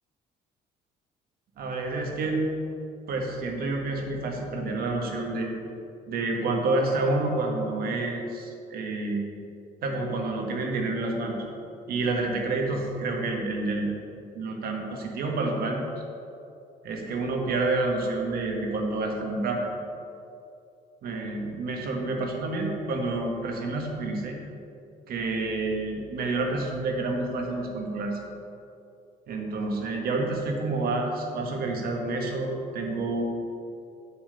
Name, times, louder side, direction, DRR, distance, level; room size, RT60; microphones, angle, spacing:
voice 1, 1.6-2.4 3.1-5.5 6.1-9.2 9.8-11.4 11.9-13.9 14.3-15.8 16.8-19.7 21.0-24.4 25.1-28.2 29.3-33.2, right 2 dB, 65° right, 1 dB, 1.5 m, -28 dB
7.1 x 4.7 x 6.7 m, 2.6 s
cardioid pair, 110°, 17 cm